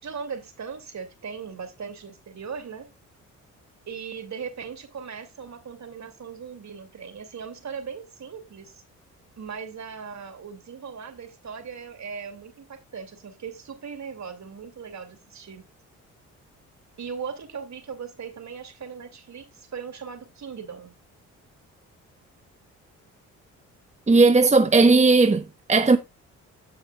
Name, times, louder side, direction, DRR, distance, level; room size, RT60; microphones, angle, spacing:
voice 1, 0.0-2.9 3.9-8.8 9.4-15.6 17.0-20.9, right 6 dB, 45° right, 2.7 m, -38 dB
voice 2, 24.1-25.4 25.7-26.0, right 3 dB, 20° right, 0.9 m, -16 dB
16.5 x 5.6 x 2.3 m
hypercardioid pair, 50°, 38 cm